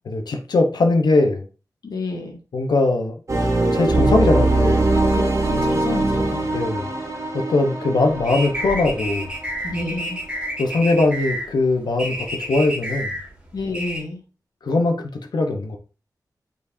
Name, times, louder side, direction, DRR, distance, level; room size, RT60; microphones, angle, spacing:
voice 1, 0.1-1.5 2.5-3.1 3.7-4.9 6.5-6.9 7.3-9.3 10.6-13.2 14.6-15.8, left 2 dB, 90° left, 4 dB, 1.0 m, -20 dB
voice 2, 1.8-2.4 5.1-5.2 5.5-6.5 9.6-10.2 13.5-14.2, left 2 dB, 70° left, 1 dB, 2.0 m, -29 dB
sound 1, 3.3-10.1, right 2 dB, 45° right, 1.6 m, -22 dB
sound 2, 8.0-14.0, equal, 15° right, 1.9 m, -30 dB
8.4 x 4.5 x 2.7 m, 0.35 s
wide cardioid pair, 140°, 7 cm